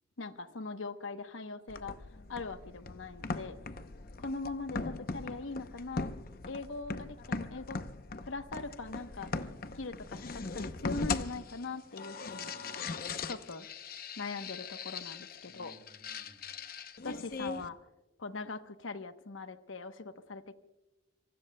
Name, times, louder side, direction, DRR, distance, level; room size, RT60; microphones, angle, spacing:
voice 1, 0.2-2.0 2.3-3.5 4.2-6.1 6.5-7.8 8.3-9.3 9.8-12.5 13.3-13.7 14.2-15.7 17.0-17.8 18.2-20.5, left 3 dB, 80° left, 9 dB, 1.0 m, -41 dB
sound 1, 1.7-17.7, left 4 dB, 50° left, 0.7 m, -40 dB
voice 2, 3.2-4.3 12.4-13.0 15.4-16.6 17.6-17.7, equal, 20° right, 3 dB, 4.1 m, -61 dB
26.0 x 24.0 x 2.2 m, 1.0 s
head